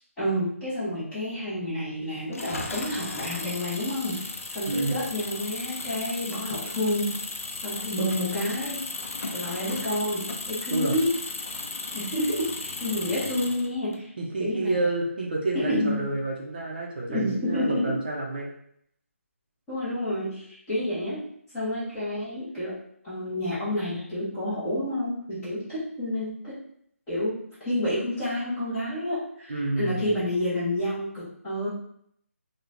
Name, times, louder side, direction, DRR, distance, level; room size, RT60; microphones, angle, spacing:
voice 1, 0.2-7.2 7.6-8.8 9.3-11.1 11.9-14.1 14.4-14.8 15.5-16.1 17.1-17.9 19.7-21.2 21.5-22.8 23.0-26.5 27.1-31.7, left 1 dB, 10° left, -12 dB, 0.7 m, -29 dB
Engine, 2.3-14.0, left 3 dB, 70° left, 0.4 m, -35 dB
voice 2, 4.7-5.0 10.7-11.0 14.2-18.5 29.5-30.1, right 2 dB, 40° right, -2 dB, 0.5 m, -29 dB
3.0 x 2.1 x 2.4 m, 0.68 s
hypercardioid pair, 170°, 8 cm